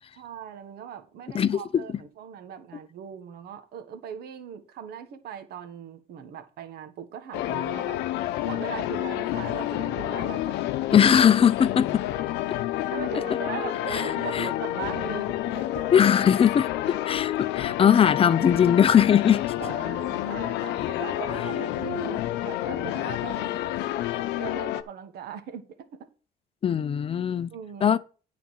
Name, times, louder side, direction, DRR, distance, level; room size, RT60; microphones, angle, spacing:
voice 1, 0.1-8.0 8.4-10.6 10.9-11.3 12.9-15.9 19.6-23.6 24.3-26.1 27.5-27.9, right 8 dB, 70° right, 1.4 m, -39 dB
voice 2, 1.3-1.8 10.9-12.0 12.5-12.6 13.9-14.5 15.9-19.4 26.6-27.5 27.8-28.0, left 8 dB, 35° left, 0.5 m, -20 dB
sound 1, 7.3-24.8, left 14 dB, 85° left, 0.7 m, -29 dB
9.9 x 4.2 x 7.3 m
cardioid pair, 110°, 17 cm